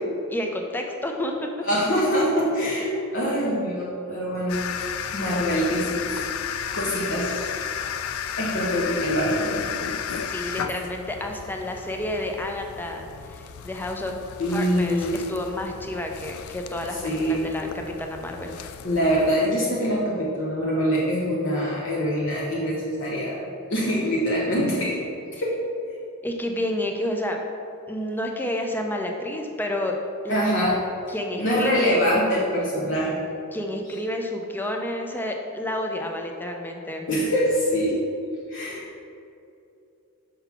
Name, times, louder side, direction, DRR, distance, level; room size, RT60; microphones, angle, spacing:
voice 1, 0.3-1.5 10.3-14.1 14.5-17.7 18.0-18.6 26.2-27.4 27.9-30.0 30.2-30.6 31.1-32.0 33.5-37.0, left 1 dB, 10° left, 2 dB, 0.5 m, -30 dB
voice 2, 1.6-4.6 5.1-7.7 8.4-9.6 10.1-10.2 14.4-15.2 17.0-17.5 18.8-23.4 23.7-25.0 25.4-25.6 30.3-30.8 31.4-33.2 37.1-38.0 38.5-38.8, equal, 60° left, -5 dB, 0.9 m, -24 dB
sound 1, 4.5-19.3, left 8 dB, 85° left, 0.3 m, -34 dB
5.6 x 3.9 x 5.8 m, 2.7 s
head